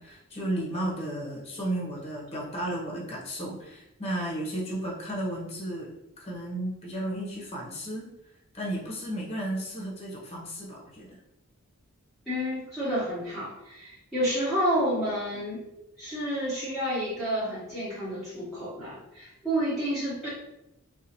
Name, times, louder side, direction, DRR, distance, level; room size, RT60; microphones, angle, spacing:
voice 1, 0.0-5.9 6.2-8.1 8.5-11.2, right 1 dB, 30° left, -3 dB, 0.9 m, -33 dB
voice 2, 12.3-15.6 16.0-20.3, equal, ahead, -12 dB, 1.1 m, -30 dB
4.0 x 2.4 x 2.9 m, 0.88 s
head